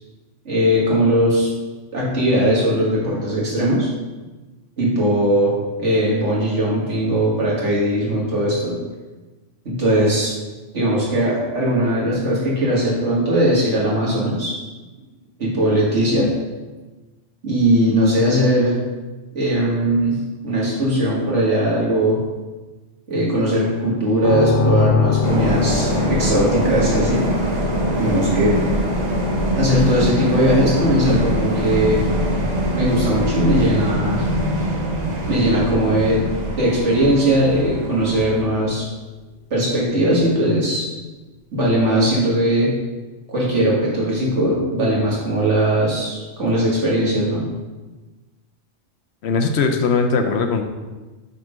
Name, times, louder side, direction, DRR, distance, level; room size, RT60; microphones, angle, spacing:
voice 1, 0.5-1.5 1.9-3.9 4.8-8.8 9.6-10.3 10.7-14.5 15.4-16.3 17.4-18.8 19.3-22.2 23.1-27.2 28.0-28.6 29.6-32.0 32.7-34.3 35.3-36.2 36.5-38.9 39.5-40.9 41.5-42.7 43.3-47.4, equal, 70° right, -5 dB, 2.1 m, -19 dB
sound 1, 24.2-38.0, left 4 dB, 90° left, 1.2 m, -27 dB
sound 2, 25.2-38.4, equal, 40° right, 1.0 m, -23 dB
voice 2, 49.2-50.6, left 4 dB, 65° left, 6 dB, 0.8 m, -19 dB
6.3 x 3.6 x 5.1 m, 1.2 s
omnidirectional pair, 1.2 m